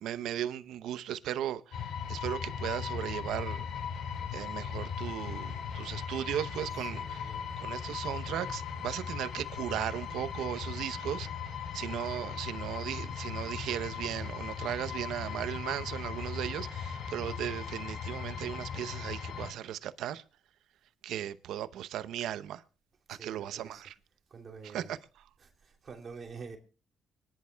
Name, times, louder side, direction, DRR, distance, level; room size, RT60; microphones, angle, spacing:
voice 1, 0.0-3.7 4.3-11.3 11.7-20.2 21.0-22.6 23.1-23.9 24.7-25.0, right 11 dB, 80° right, 0.7 m, -37 dB
sound 1, 1.7-19.5, left 7 dB, 75° left, 2.2 m, -38 dB
voice 2, 6.7-7.6 23.1-23.8 24.3-24.9 25.4-26.6, right 5 dB, 45° right, 2.9 m, -47 dB
25.0 x 11.0 x 2.3 m
cardioid pair, 90°, 0 cm